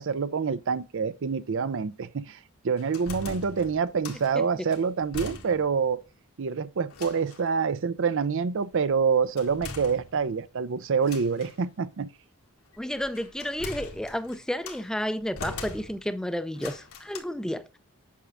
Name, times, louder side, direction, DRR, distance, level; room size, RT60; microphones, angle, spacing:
voice 1, 0.0-2.4 2.6-6.0 6.4-12.1, right 5 dB, 60° right, 0.5 m, -26 dB
sound 1, 2.8-4.3 4.7-5.8 6.1-6.2 6.9-7.5 9.4-10.5 11.0-11.6 12.7-14.9 15.4-16.2 16.5-17.2, left 3 dB, 75° left, 1.7 m, -41 dB
voice 2, 12.8-17.8, equal, 5° left, 0.4 m, -31 dB
8.4 x 6.0 x 2.5 m
head